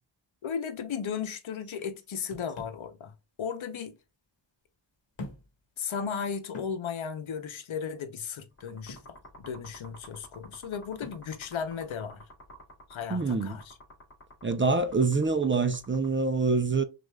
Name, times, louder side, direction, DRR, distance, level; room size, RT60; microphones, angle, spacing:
voice 1, 0.4-4.0 5.8-12.2 12.9-13.7, left 7 dB, 85° left, 0.8 m, -35 dB
sound 1, 2.3-2.9 4.0-4.1 5.1-5.6 6.0-6.1 6.5-6.8 8.9-9.2 11.0-11.3, left 2 dB, 70° left, 1.2 m, -44 dB
sound 2, 8.6-16.1, equal, 30° left, 2.4 m, -51 dB
voice 2, 13.1-13.6 14.4-16.8, right 4 dB, 25° right, 0.5 m, -26 dB
6.2 x 2.5 x 2.3 m
wide cardioid pair, 120°, 47 cm